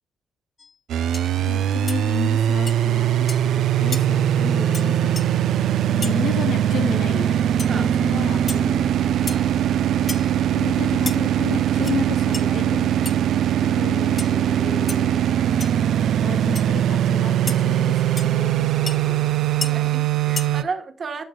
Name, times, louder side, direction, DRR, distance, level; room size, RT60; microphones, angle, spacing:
sound 1, 0.6-0.7 1.1-1.3 1.9-2.0 2.7-2.8 3.3-3.5 3.9-4.0 4.7-4.9 5.2-5.3 6.0-6.2 7.6-7.7 8.5-8.6 9.3-9.5 10.1-10.3 11.1-11.2 11.7-12.0 12.3-12.4 13.0-13.1 14.2-14.3 14.9-15.0 15.6-15.8 16.5-16.6 17.5-17.6 18.2-18.3 18.9-19.0 19.6-19.7 20.4-20.5, left 4 dB, 25° left, 0.6 m, -32 dB
sound 2, 0.9-20.6, right 11 dB, 75° right, 0.4 m, -21 dB
voice 1, 1.5-5.4 5.9-8.9 10.5-15.3 16.2-19.5, left 7 dB, 65° left, 0.6 m, -32 dB
voice 2, 7.6-7.9 9.1-9.6 19.6-21.2, right 5 dB, 40° right, 1.2 m, -33 dB
12.5 x 6.5 x 2.2 m
cardioid pair, 120°, 0 cm